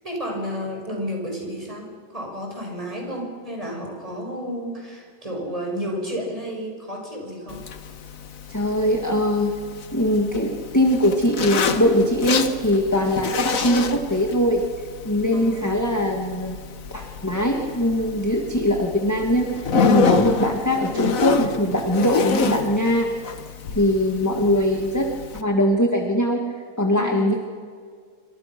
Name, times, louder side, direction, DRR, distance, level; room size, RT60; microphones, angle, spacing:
voice 1, 0.0-7.7 15.3-15.8 26.9-27.4, equal, 20° right, 0 dB, 6.1 m, -32 dB
Zipper (clothing), 7.5-25.4, left 4 dB, 60° left, 1.7 m, -28 dB
voice 2, 8.5-9.5 9.9-14.6 15.0-16.6 16.9-23.1 23.8-25.1 25.3-26.4 26.8-27.4, equal, 10° left, 2 dB, 1.9 m, -21 dB
27.5 x 25.5 x 6.1 m, 2.1 s
omnidirectional pair, 1.7 m